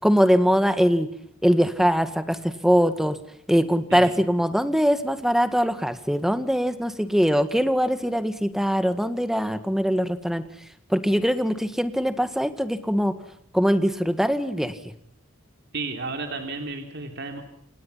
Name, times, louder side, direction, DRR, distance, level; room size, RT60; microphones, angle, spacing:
voice 1, 0.0-1.1 1.4-2.4 2.6-3.2 3.5-10.4 10.9-13.1 13.5-14.8, equal, ahead, 10 dB, 1.9 m, -22 dB
voice 2, 15.7-17.4, right 3 dB, 55° right, 5 dB, 3.5 m, -33 dB
29.5 x 25.5 x 5.8 m, 0.67 s
head